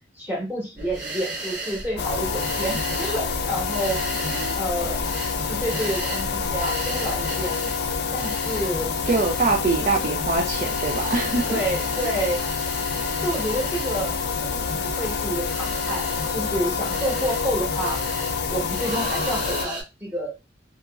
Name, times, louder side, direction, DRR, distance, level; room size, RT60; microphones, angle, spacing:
voice 1, 0.2-4.3 4.6-5.0 5.5-7.6 8.1-8.9 11.5-12.4 13.1-18.1 18.5-20.3, equal, 10° right, -3 dB, 1.1 m, -29 dB
sound 1, 0.8-19.8, right 2 dB, 75° right, 1.3 m, -36 dB
sound 2, 2.0-19.7, left 5 dB, 65° left, 0.4 m, -27 dB
voice 2, 9.1-11.6 12.0-12.1, right 3 dB, 45° right, 2 dB, 0.4 m, -24 dB
2.9 x 2.4 x 2.3 m, 0.27 s
head